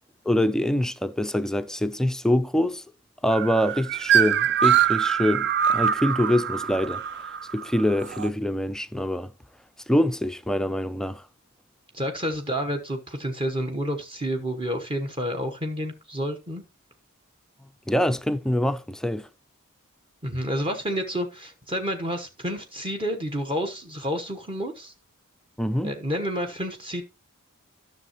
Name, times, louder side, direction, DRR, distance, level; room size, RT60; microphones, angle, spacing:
voice 1, 0.3-2.8 3.2-7.0 7.5-9.3 9.9-11.2 17.9-19.3 25.6-25.9, left 1 dB, 5° left, 0.4 m, -25 dB
sound 1, 3.3-8.3, right 9 dB, 50° right, 0.5 m, -23 dB
voice 2, 11.9-16.6 20.2-24.9 25.8-27.0, equal, 25° right, 1.1 m, -29 dB
13.0 x 6.5 x 2.9 m
head